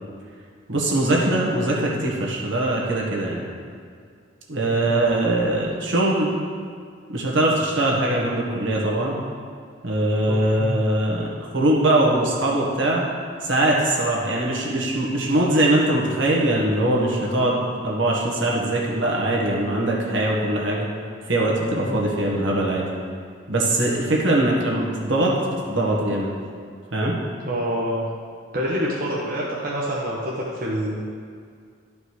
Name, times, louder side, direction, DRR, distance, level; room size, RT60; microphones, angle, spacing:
voice 1, 0.7-3.4 4.5-6.4 7.1-9.2 9.8-13.0 13.4-20.9 21.3-22.9 23.5-26.3 26.9-27.1, right 1 dB, 75° right, -3 dB, 1.6 m, -22 dB
voice 2, 4.9-5.4 10.3-10.8 21.8-22.0 27.4-28.0 28.5-31.0, equal, 45° right, -5 dB, 1.1 m, -27 dB
11.5 x 5.2 x 4.9 m, 2.2 s
head